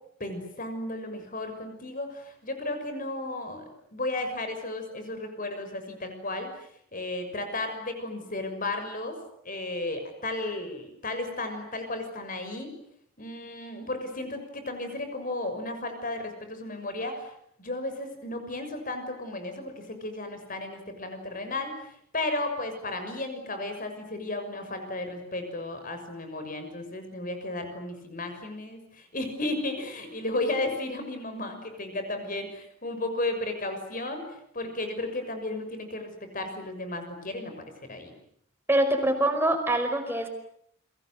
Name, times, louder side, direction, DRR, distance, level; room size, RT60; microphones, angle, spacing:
voice 1, 0.2-6.5 6.9-9.2 9.4-12.7 13.2-17.3 17.6-21.7 22.1-34.2 34.5-38.1, left 2 dB, 40° left, 7 dB, 6.4 m, -34 dB
voice 2, 38.7-40.3, right 1 dB, 10° right, 5 dB, 5.2 m, -24 dB
30.0 x 24.0 x 8.0 m, 0.68 s
head